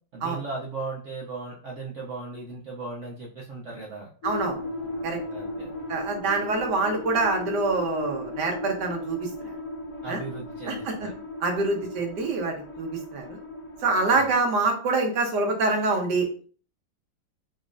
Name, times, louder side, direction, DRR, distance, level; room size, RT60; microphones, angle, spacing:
voice 1, 0.1-4.1 5.3-5.7 10.0-11.1 14.1-14.3, right 3 dB, 85° right, -3 dB, 0.6 m, -37 dB
sound 1, 4.2-14.4, left 1 dB, 65° left, 0.8 m, -36 dB
voice 2, 4.2-4.6 5.0-5.2 5.9-9.5 10.1-10.2 10.7-11.1 11.4-13.4 13.8-16.3, right 3 dB, 65° right, 3 dB, 1.4 m, -26 dB
4.0 x 3.1 x 2.5 m, 0.42 s
omnidirectional pair, 2.1 m